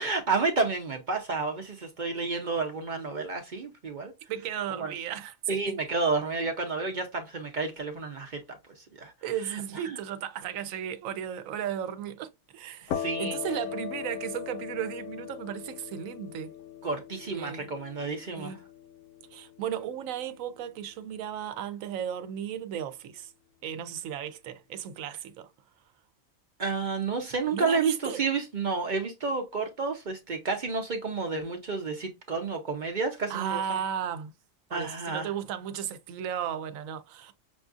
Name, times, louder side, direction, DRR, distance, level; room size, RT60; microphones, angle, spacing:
voice 1, 0.0-4.1 4.7-4.9 5.5-8.4 8.8-9.1 9.5-10.0 12.9-13.4 16.8-18.6 26.6-33.8 34.7-35.3, right 4 dB, 50° right, 0.6 m, -30 dB
voice 2, 4.3-5.8 9.2-16.5 17.2-17.7 18.3-18.6 19.3-23.3 23.6-25.5 27.5-28.2 33.3-34.3 34.7-37.3, right 9 dB, 85° right, 1.0 m, -35 dB
sound 1, 12.9-20.4, left 9 dB, 75° left, 0.9 m, -39 dB
6.1 x 2.4 x 2.5 m
omnidirectional pair, 1.4 m